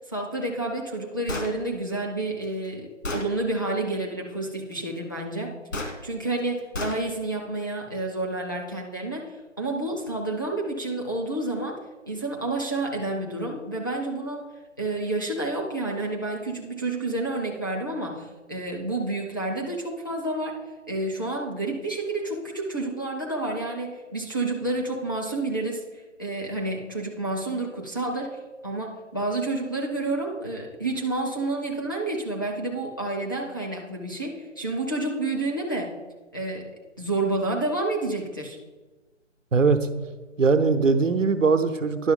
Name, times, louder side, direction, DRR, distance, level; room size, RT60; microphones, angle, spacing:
voice 1, 0.1-5.5 6.0-9.3 9.6-11.8 12.1-14.5 14.8-20.6 20.9-25.8 26.2-35.9 36.3-38.6, right 2 dB, 20° left, -2 dB, 0.4 m, -29 dB
Gunshot gunfire, 1.3-1.5 2.4-2.5 3.0-3.3 5.7-5.9 6.7-7.0, left 2 dB, 80° left, 1.8 m, -30 dB
voice 2, 40.4-42.1, right 4 dB, 85° right, 9 dB, 0.9 m, -20 dB
10.5 x 6.3 x 3.8 m, 1.2 s
figure-of-eight pair, 145°, 37 cm